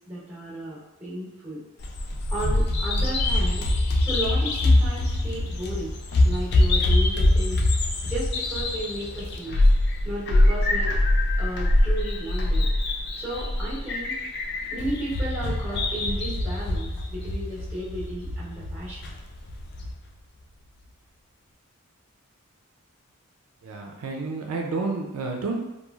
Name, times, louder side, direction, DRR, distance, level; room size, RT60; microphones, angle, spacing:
voice 1, 0.1-1.6 2.3-3.6 4.0-5.9 6.2-7.6 8.0-9.6 10.0-10.9 11.4-12.7 13.2-14.2 14.7-19.1, right 1 dB, 10° right, -8 dB, 1.0 m, -34 dB
Bird vocalization bird call bird song, 1.8-19.9, left 1 dB, 50° left, 0.3 m, -24 dB
voice 2, 23.6-25.6, right 3 dB, 85° right, 1 dB, 0.4 m, -30 dB
3.0 x 2.3 x 2.3 m, 0.98 s
head